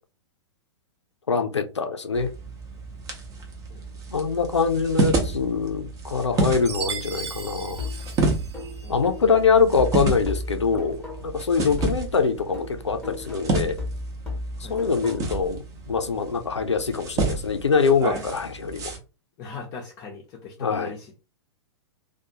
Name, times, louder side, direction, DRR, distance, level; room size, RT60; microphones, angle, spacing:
voice 1, 1.3-2.3 4.1-7.8 8.9-13.8 14.7-18.9 20.6-20.9, left 5 dB, 80° left, 0.5 m, -24 dB
sound 1, 2.1-19.0, right 2 dB, 25° right, 0.7 m, -30 dB
Chime, 6.7-9.0, right 6 dB, 70° right, 0.5 m, -36 dB
sound 2, 7.8-11.5 11.8-15.5, left 3 dB, 5° left, 0.9 m, -36 dB
voice 2, 14.6-14.9 19.4-21.2, left 4 dB, 30° left, 0.6 m, -40 dB
2.4 x 2.3 x 2.7 m
figure-of-eight pair, 105°, 15 cm